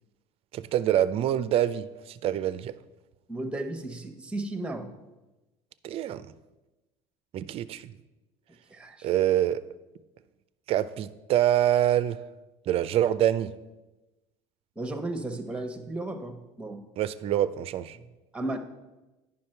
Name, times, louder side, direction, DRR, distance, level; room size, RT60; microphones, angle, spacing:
voice 1, 0.5-2.7 5.8-6.2 7.3-7.9 9.0-9.6 10.7-12.2 12.7-13.5 17.0-18.0, right 11 dB, 45° right, 15 dB, 0.4 m, -25 dB
voice 2, 3.3-4.9 8.7-9.1 14.8-16.8 17.9-18.1 18.3-18.6, right 2 dB, 10° right, 7 dB, 1.0 m, -34 dB
9.5 x 5.8 x 4.4 m, 1.1 s
supercardioid pair, 100°, 13 cm